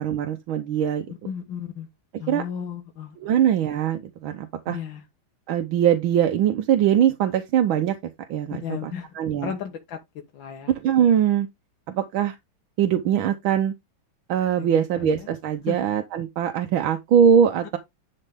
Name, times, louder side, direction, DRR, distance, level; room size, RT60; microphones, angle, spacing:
voice 1, 0.0-1.0 2.3-2.4 3.2-4.8 5.5-9.5 10.8-11.5 11.9-12.4 12.8-13.7 14.3-17.8, right 9 dB, 85° right, 1.7 m, -22 dB
voice 2, 1.1-1.9 2.2-3.2 4.7-5.1 8.5-10.0 10.3-10.7 14.6-15.3 15.7-15.8, left 8 dB, 70° left, 1.8 m, -34 dB
11.0 x 4.5 x 3.6 m
omnidirectional pair, 2.2 m